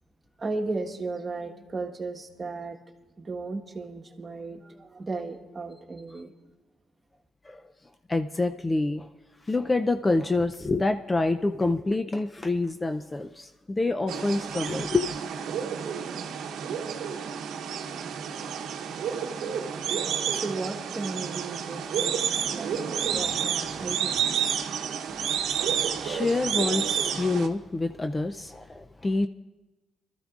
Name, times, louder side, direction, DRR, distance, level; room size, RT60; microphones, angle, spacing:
voice 1, 0.4-2.8 3.2-6.3 19.6-22.2 22.5-22.8 23.1-24.2, right 3 dB, 30° right, 3 dB, 1.4 m, -35 dB
voice 2, 8.1-9.1 9.5-15.2 25.9-29.3, left 2 dB, 20° left, 8 dB, 0.4 m, -27 dB
sound 1, 14.1-27.5, right 8 dB, 80° right, 0.9 m, -30 dB
22.5 x 13.5 x 2.5 m, 1.1 s
cardioid pair, 90°, 0 cm